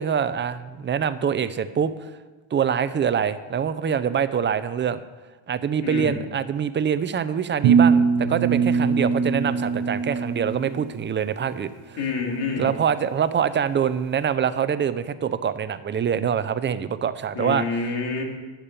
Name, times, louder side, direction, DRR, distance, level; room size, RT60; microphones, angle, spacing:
voice 1, 0.0-2.1 2.5-5.0 5.5-12.0 12.6-17.9, right 7 dB, 25° right, 13 dB, 0.5 m, -25 dB
voice 2, 5.8-6.2 12.0-12.8 17.3-18.2, left 4 dB, 55° left, 1 dB, 2.7 m, -27 dB
sound 1, 7.6-10.8, right 6 dB, 55° right, 1.0 m, -21 dB
9.9 x 7.5 x 6.9 m, 1.2 s
cardioid pair, 110°, 47 cm